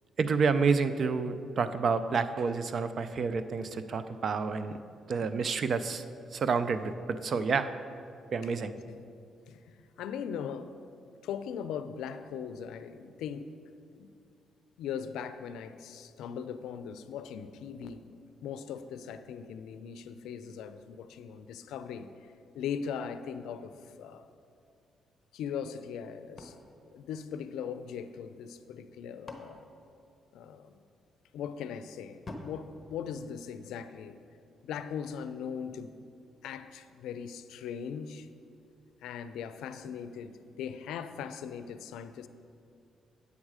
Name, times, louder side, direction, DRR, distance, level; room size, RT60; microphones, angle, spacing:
voice 1, 0.2-4.8 5.1-6.0 6.3-7.7 8.3-8.7, right 5 dB, 50° right, 12 dB, 0.4 m, -29 dB
voice 2, 8.6-9.0 9.5-10.7 11.2-13.5 13.9-14.1 14.8-18.0 18.4-22.1 22.5-23.7 24.0-24.2 25.3-26.5 26.8-29.6 30.3-30.8 31.3-34.2 34.6-35.9 36.4-38.3 39.0-42.3, left 7 dB, 85° left, 11 dB, 0.4 m, -39 dB
sound 1, 26.4-27.9 28.8-30.7 32.2-33.9, left 2 dB, 30° left, 1.0 m, -49 dB
8.4 x 7.2 x 4.9 m, 2.5 s
cardioid pair, 90°, 0 cm